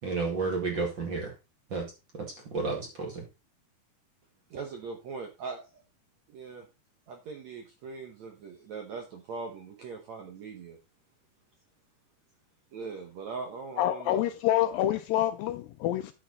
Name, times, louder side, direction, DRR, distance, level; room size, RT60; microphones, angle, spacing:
voice 1, 0.0-1.3 1.7-3.3, right 4 dB, 40° right, 2.1 m, -32 dB
voice 2, 4.5-5.8 6.3-6.7 7.1-10.8 12.7-14.2, right 4 dB, 65° right, 1.8 m, -40 dB
voice 3, 13.8-16.1, left 13 dB, 80° left, 2.1 m, -27 dB
10.5 x 5.9 x 4.0 m
omnidirectional pair, 4.5 m